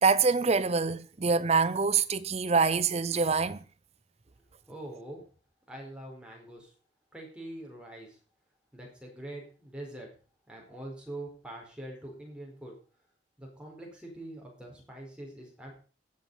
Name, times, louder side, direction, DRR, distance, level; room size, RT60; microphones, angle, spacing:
voice 1, 0.0-3.6, right 4 dB, 35° right, 0.7 m, -25 dB
voice 2, 4.7-5.2 5.7-6.7 7.1-8.2 8.7-10.1 10.5-12.7 13.4-15.7, right 1 dB, 5° right, 4.5 m, -44 dB
15.0 x 7.8 x 5.5 m
head